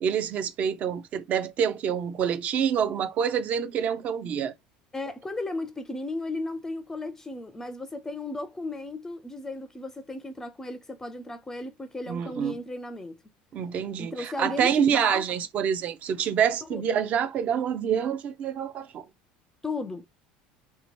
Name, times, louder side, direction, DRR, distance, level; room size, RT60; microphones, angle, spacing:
voice 1, 0.0-4.5 12.1-12.5 13.5-19.0, right 8 dB, 45° right, 0.5 m, -27 dB
voice 2, 4.9-13.2 14.0-15.3 16.6-17.0 19.6-20.1, left 2 dB, 15° left, 0.4 m, -35 dB
2.8 x 2.2 x 3.0 m
supercardioid pair, 105°, 3 cm